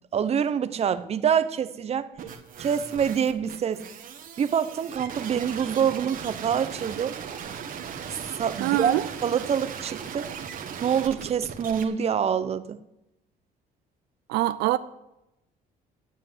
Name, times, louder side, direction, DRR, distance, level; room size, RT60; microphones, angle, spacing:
voice 1, 0.1-2.1 2.6-3.8 4.4-7.2 8.4-8.9 9.2-10.3 10.8-12.8, right 8 dB, 40° right, 0.7 m, -26 dB
sound 1, 2.2-11.8, right 7 dB, 55° right, 1.5 m, -38 dB
voice 2, 8.6-9.1 14.3-14.8, right 16 dB, 90° right, 0.5 m, -24 dB
9.9 x 7.2 x 7.9 m
cardioid pair, 110°, 17 cm